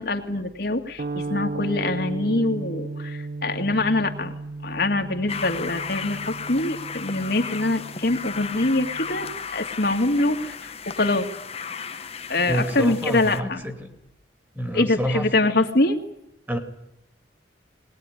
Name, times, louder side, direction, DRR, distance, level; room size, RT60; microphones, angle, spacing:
voice 1, 0.0-4.3 4.6-11.3 11.6-13.6 14.7-16.0, left 2 dB, 60° left, 4 dB, 2.1 m, -24 dB
sound 1, 1.0-9.4, right 3 dB, 50° right, 0.8 m, -35 dB
sound 2, 5.3-13.4, left 6 dB, 35° left, 1.1 m, -35 dB
voice 2, 12.5-13.9 14.6-15.3 16.5-16.6, equal, 10° right, 6 dB, 2.6 m, -28 dB
20.5 x 20.0 x 9.9 m, 0.86 s
head